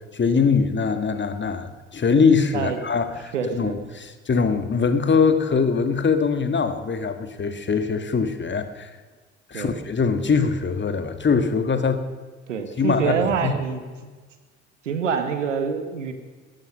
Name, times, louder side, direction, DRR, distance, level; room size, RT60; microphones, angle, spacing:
voice 1, 0.1-8.9 9.5-12.1 12.8-13.6, left 5 dB, 30° left, 9 dB, 1.8 m, -22 dB
voice 2, 2.5-2.8 3.3-3.7 9.5-9.7 12.5-14.1 14.8-16.1, right 6 dB, 85° right, 8 dB, 1.5 m, -26 dB
18.0 x 14.0 x 5.3 m, 1.4 s
figure-of-eight pair, 50°, 36 cm